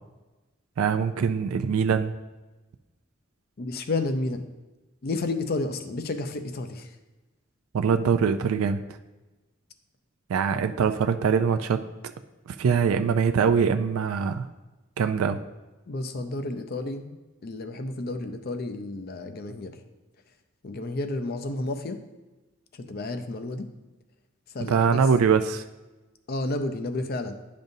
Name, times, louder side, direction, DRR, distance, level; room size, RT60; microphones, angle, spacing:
voice 1, 0.8-2.1 7.7-8.8 10.3-11.8 12.6-14.5 15.0-15.4 24.7-25.6, right 6 dB, 85° right, 8 dB, 0.3 m, -23 dB
voice 2, 3.6-4.4 5.0-6.9 15.9-17.1 17.4-19.8 20.6-22.0 22.7-23.7 24.5-25.0 26.3-27.4, left 2 dB, 45° left, 8 dB, 0.5 m, -31 dB
10.5 x 5.2 x 2.7 m, 1.1 s
head